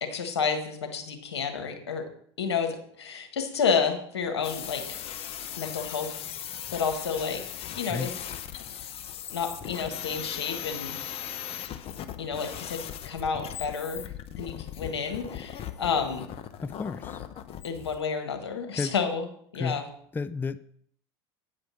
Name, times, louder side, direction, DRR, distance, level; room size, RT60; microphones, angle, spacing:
voice 1, 0.0-2.0 2.4-5.0 5.6-6.1 6.7-7.4 7.8-8.1 9.3-11.0 12.2-14.1 14.4-16.3 17.6-19.3 19.5-19.8, left 6 dB, 90° left, 5 dB, 1.5 m, -30 dB
sound 1, 4.4-18.1, left 10 dB, 45° left, 0.9 m, -38 dB
voice 2, 16.6-17.2 18.7-18.9 19.5-19.8 20.1-20.6, left 4 dB, 15° left, 15 dB, 0.4 m, -32 dB
9.2 x 5.1 x 7.5 m, 0.64 s
hypercardioid pair, 80°, 14 cm